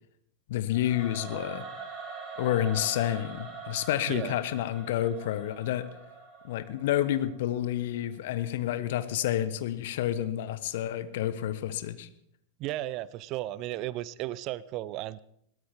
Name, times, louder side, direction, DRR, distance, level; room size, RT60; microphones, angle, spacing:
voice 1, 0.5-1.6 2.4-5.9 6.4-12.1, left 12 dB, 55° left, 13 dB, 1.1 m, -29 dB
Singing / Musical instrument, 0.7-7.8, right 4 dB, 15° right, 6.5 m, -43 dB
voice 2, 4.1-4.4 12.6-15.2, right 15 dB, 40° right, 20 dB, 0.6 m, -34 dB
22.0 x 17.5 x 3.6 m, 0.71 s
figure-of-eight pair, 90°, 0 cm